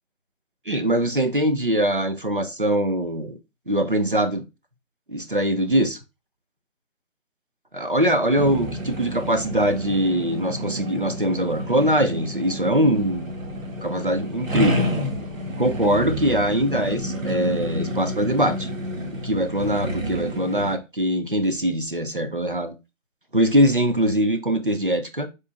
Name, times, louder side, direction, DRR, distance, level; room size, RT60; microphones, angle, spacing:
voice 1, 0.7-3.4 3.7-4.4 5.1-6.0 7.7-13.4 13.8-14.9 15.6-18.8 19.2-22.7 23.3-25.3, right 1 dB, 45° right, 0.4 m, -22 dB
sound 1, 8.4-20.8, equal, 75° right, 1.4 m, -30 dB
3.7 x 2.8 x 3.8 m
hypercardioid pair, 175°, 39 cm